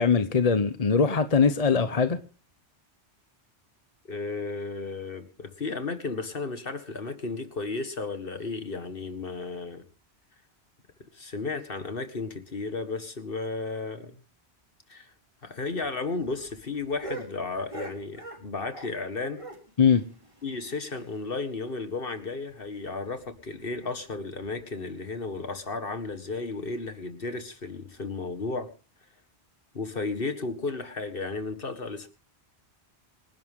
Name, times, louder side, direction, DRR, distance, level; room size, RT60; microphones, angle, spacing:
voice 1, 0.0-2.2 19.8-20.0, left 5 dB, 40° left, 0.9 m, -21 dB
voice 2, 4.1-9.8 11.1-14.2 14.9-15.1 15.4-19.4 20.4-28.7 29.7-32.1, left 3 dB, 55° left, 2.0 m, -34 dB
sound 1, 15.6-19.0 19.3-21.3 21.6-21.7 22.0-22.1 22.5-22.6 23.2-23.5 24.3-24.4, right 2 dB, 30° right, 3.3 m, -43 dB
26.5 x 11.0 x 3.7 m
omnidirectional pair, 1.1 m